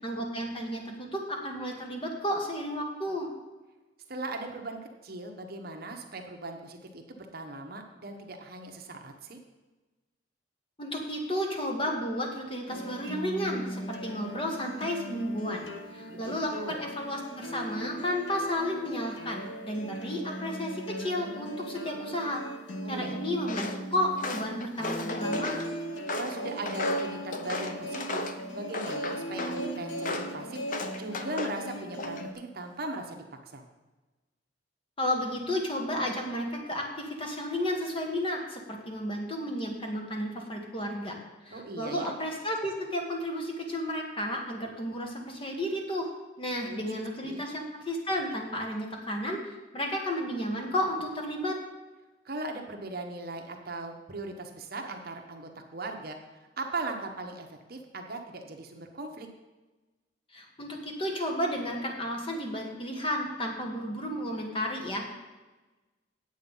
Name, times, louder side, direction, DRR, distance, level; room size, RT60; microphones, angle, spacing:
voice 1, 0.0-3.3 10.8-15.7 15.9-22.4 22.9-25.6 35.0-41.1 41.5-46.1 46.4-51.6 60.3-65.1, equal, 30° left, 1 dB, 1.7 m, -32 dB
voice 2, 4.1-9.4 16.1-16.8 22.8-23.2 26.1-28.2 28.5-33.2 33.5-33.6 41.5-42.1 46.6-47.4 52.2-56.2 56.6-59.3, right 2 dB, 55° right, 3 dB, 1.2 m, -39 dB
sound 1, 12.7-32.3, equal, 70° left, 1.1 m, -38 dB
Walk footsteps, 23.5-23.8 24.2-25.7 26.1-28.4 28.7-29.6 30.0-30.3 30.7-31.6 32.0-32.4, left 3 dB, 45° left, 0.8 m, -35 dB
9.2 x 8.1 x 5.5 m, 1.2 s
head